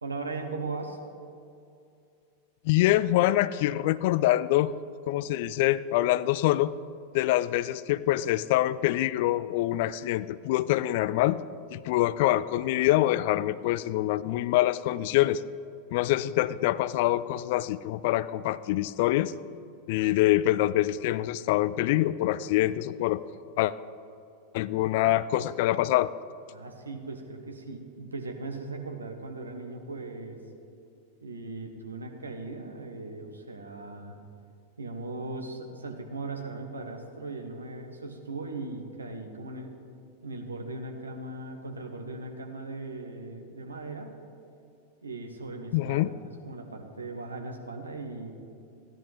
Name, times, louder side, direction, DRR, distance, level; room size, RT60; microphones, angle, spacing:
voice 1, 0.0-1.0 26.5-30.4 31.2-34.2 34.8-39.7 40.2-44.1 45.0-46.2 46.5-48.3, right 3 dB, 75° right, 3 dB, 1.4 m, -38 dB
voice 2, 2.6-4.7 5.1-6.7 7.1-11.4 11.7-15.4 15.9-19.3 19.9-23.2 23.6-23.7 24.5-26.1 45.7-46.1, left 15 dB, 50° left, 17 dB, 0.3 m, -25 dB
16.0 x 11.0 x 3.6 m, 2.5 s
figure-of-eight pair, 90°, 0 cm